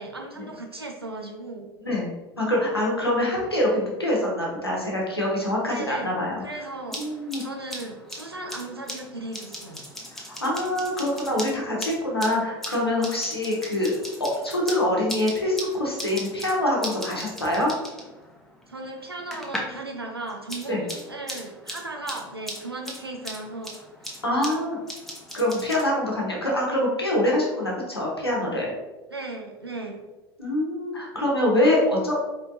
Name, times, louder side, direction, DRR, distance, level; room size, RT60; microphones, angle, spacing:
voice 1, 0.0-1.7 5.7-6.1 6.4-7.0 7.4-9.8 18.7-24.2 29.1-30.0, right 2 dB, 90° right, 1 dB, 0.6 m, -36 dB
voice 2, 1.8-2.1 2.4-6.4 7.0-7.4 10.4-17.7 20.7-20.8 24.2-24.8 25.3-28.7 30.4-32.2, left 1 dB, 90° left, -3 dB, 1.0 m, -25 dB
sound 1, 6.7-19.8 20.1-25.8, equal, ahead, 0.8 m, -39 dB
4.4 x 3.4 x 2.6 m, 1.1 s
figure-of-eight pair, 70°, 13 cm